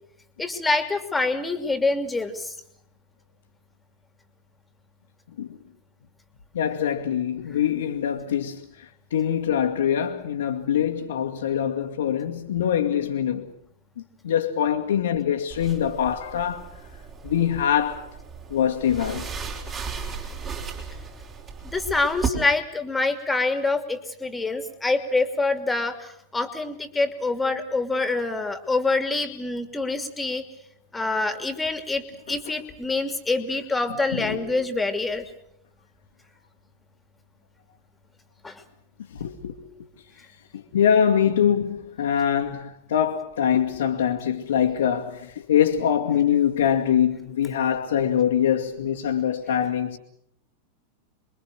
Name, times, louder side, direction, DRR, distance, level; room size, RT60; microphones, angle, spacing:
voice 1, 0.4-2.5 21.7-30.4 30.9-35.2 38.4-38.6, left 3 dB, 10° left, 2.8 m, -26 dB
voice 2, 6.5-8.6 9.1-13.5 14.2-16.7 17.2-18.1 18.5-19.3 34.1-34.4 39.1-39.6 40.5-50.0, left 9 dB, 65° left, 1.9 m, -23 dB
sound 1, 15.5-22.3, right 5 dB, 25° right, 5.3 m, -35 dB
28.0 x 23.0 x 6.5 m
figure-of-eight pair, 90°, 0 cm